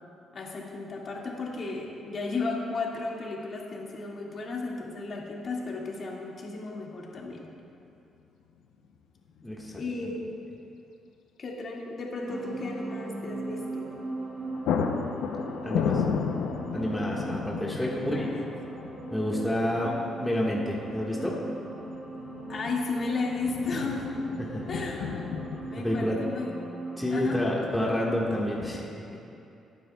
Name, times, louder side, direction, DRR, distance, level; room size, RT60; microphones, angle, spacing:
voice 1, 0.3-7.5 9.8-10.3 11.4-13.9 17.8-18.4 22.5-24.1 24.7-25.2 25.7-26.5 27.1-27.4, left 3 dB, 50° left, -2 dB, 2.2 m, -34 dB
sound 1, 7.7-7.8 9.4-9.8 10.1-10.2 13.9-14.1 14.3-25.7, left 6 dB, 85° left, 0.7 m, -34 dB
voice 2, 9.4-9.7 10.0-10.1 15.6-16.0 16.7-18.3 19.1-21.4 24.4-24.6 25.8-26.2 27.0-28.8, left 1 dB, 5° left, -4 dB, 1.7 m, -29 dB
sound 2, 12.3-28.6, right 2 dB, 25° right, 2.0 m, -39 dB
19.5 x 9.5 x 2.4 m, 2.7 s
cardioid pair, 90°, 0 cm